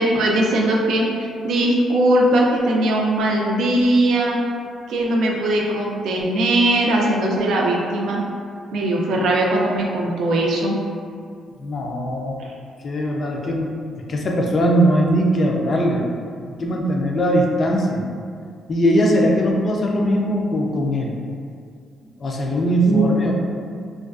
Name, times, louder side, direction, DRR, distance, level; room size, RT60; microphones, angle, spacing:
voice 1, 0.0-4.4 4.9-8.2 8.7-10.7 12.4-12.5 22.9-23.2, right 1 dB, 75° right, -1 dB, 0.4 m, -19 dB
voice 2, 11.6-12.4 12.8-16.0 16.6-18.0 18.7-21.1 22.2-23.3, equal, 45° left, 0 dB, 0.4 m, -20 dB
2.4 x 2.2 x 2.3 m, 2.2 s
cardioid pair, 90°, 0 cm